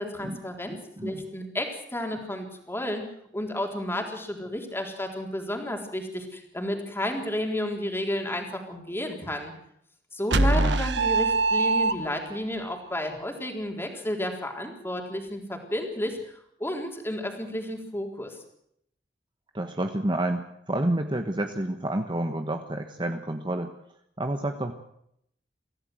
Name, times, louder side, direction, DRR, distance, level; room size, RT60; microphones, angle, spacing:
voice 1, 0.0-3.0 3.3-9.5 10.1-16.3 16.6-18.4, left 1 dB, 15° left, 2 dB, 3.9 m, -32 dB
voice 2, 0.7-1.2 10.5-10.8 19.5-23.7 24.2-24.7, right 1 dB, 25° right, 6 dB, 1.3 m, -29 dB
sound 1, 10.3-12.4, right 3 dB, 70° right, 1.3 m, -23 dB
25.0 x 16.0 x 7.9 m, 0.74 s
head